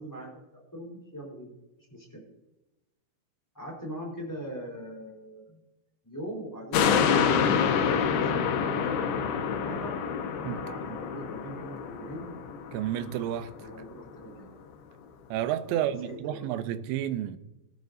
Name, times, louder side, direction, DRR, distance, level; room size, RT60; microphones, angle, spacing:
voice 1, 0.0-1.5 1.9-2.2 3.5-5.6 6.0-7.2 7.8-10.0 10.5-12.3 13.6-14.5 15.6-16.8, right 1 dB, 5° left, 3.6 m, -41 dB
sound 1, 6.7-13.4 13.8-13.9, left 7 dB, 85° left, 3.4 m, -27 dB
voice 2, 10.4-11.0 12.7-13.5 15.3-17.4, right 11 dB, 85° right, 3.0 m, -31 dB
19.0 x 11.5 x 2.7 m
omnidirectional pair, 5.1 m